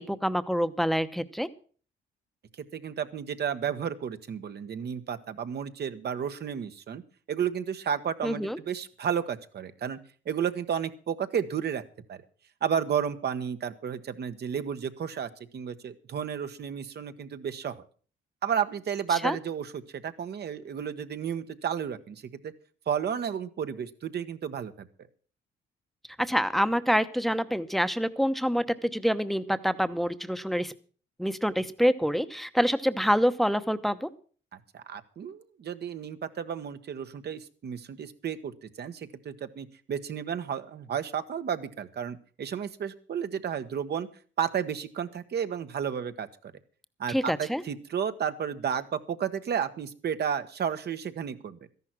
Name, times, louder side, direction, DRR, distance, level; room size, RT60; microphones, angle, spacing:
voice 1, 0.0-1.5 8.2-8.6 19.2-19.4 26.2-30.7 31.2-34.1 47.1-47.6, equal, ahead, 11 dB, 0.9 m, -26 dB
voice 2, 2.7-7.0 7.3-10.0 10.2-11.8 12.1-12.2 12.6-17.8 18.4-19.7 20.0-22.5 22.9-24.9 34.7-44.1 44.4-46.3 47.0-51.6, right 8 dB, 55° right, 10 dB, 1.3 m, -32 dB
13.5 x 11.0 x 6.1 m, 0.43 s
cardioid pair, 90°, 20 cm